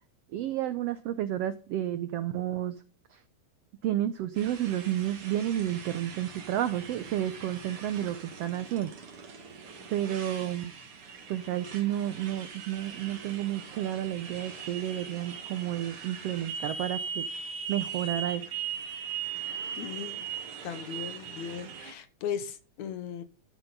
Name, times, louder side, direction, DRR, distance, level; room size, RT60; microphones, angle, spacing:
voice 1, 0.3-2.7 3.8-8.9 9.9-10.7 11.3-17.2 17.7-18.4, right 12 dB, 85° right, 1.4 m, -31 dB
Motorcycle, 4.4-21.9, right 7 dB, 50° right, 2.6 m, -40 dB
voice 2, 19.7-20.3 20.6-23.2, left 8 dB, 70° left, 2.2 m, -37 dB
12.5 x 7.4 x 5.3 m
omnidirectional pair, 3.6 m